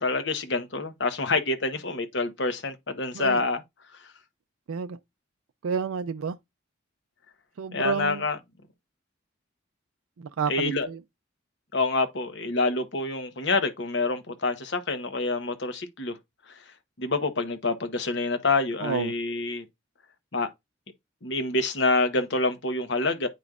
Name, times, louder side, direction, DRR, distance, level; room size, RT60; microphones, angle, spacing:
voice 1, 0.0-3.6 7.7-8.4 10.5-10.9 11.7-16.1 17.0-19.6 20.3-20.5 21.2-23.3, left 3 dB, 60° left, 1.0 m, -27 dB
voice 2, 5.6-6.4 7.6-8.2 10.2-11.0 18.8-19.1, right 6 dB, 90° right, 0.4 m, -30 dB
9.2 x 5.1 x 2.4 m
head